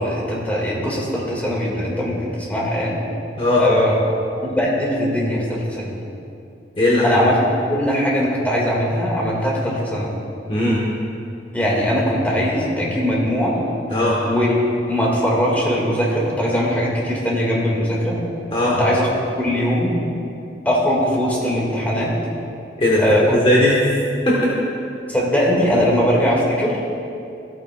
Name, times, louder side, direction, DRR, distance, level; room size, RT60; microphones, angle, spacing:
voice 1, 0.0-3.0 3.6-4.0 4.4-5.9 7.0-7.4 7.7-10.1 11.5-13.5 14.2-14.5 14.9-18.2 18.6-19.1 19.4-19.9 20.7-22.1 23.0-23.4 25.1-26.9, equal, 10° left, -4 dB, 1.8 m, -20 dB
voice 2, 6.8-7.2 10.5-10.8 13.9-14.2 18.5-18.8 22.8-23.8 24.2-24.6, left 1 dB, 30° left, -5 dB, 1.2 m, -18 dB
14.5 x 8.7 x 2.3 m, 2.6 s
head